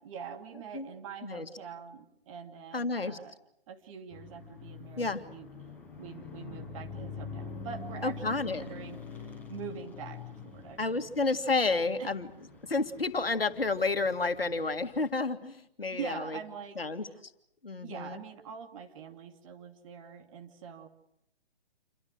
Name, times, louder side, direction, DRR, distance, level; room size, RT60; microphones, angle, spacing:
voice 1, 0.0-3.4 3.7-5.5 6.0-11.0 12.0-12.1 15.9-17.2 17.8-20.9, right 7 dB, 35° right, 4 dB, 2.8 m, -44 dB
voice 2, 2.7-3.2 5.0-5.2 8.0-8.6 10.8-12.3 12.7-16.4 16.8-17.1 17.6-18.2, left 3 dB, 75° left, 8 dB, 2.0 m, -30 dB
sound 1, 4.1-15.1, left 4 dB, 5° left, 5.5 m, -45 dB
28.5 x 24.0 x 6.4 m, 0.76 s
figure-of-eight pair, 130°, 29 cm